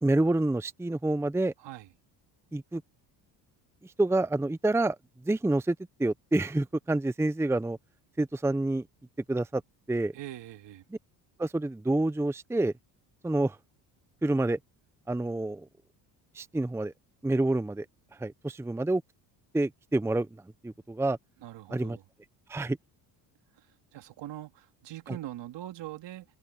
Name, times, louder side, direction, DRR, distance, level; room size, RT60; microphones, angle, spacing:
voice 1, 0.0-1.5 2.5-2.8 3.8-5.0 5.2-7.8 8.2-8.8 9.3-9.6 9.9-10.1 11.4-12.7 13.2-13.6 14.2-14.6 15.1-15.7 16.3-16.9 17.2-17.9 18.2-19.0 19.5-20.3 20.6-21.2 21.7-22.0 22.5-22.8 25.1-25.2, right 2 dB, 5° right, 0.8 m, -27 dB
voice 2, 1.6-1.9 10.1-10.8 21.4-22.0 23.9-26.3, right 14 dB, 60° right, 2.7 m, -42 dB
supercardioid pair, 75°, 48 cm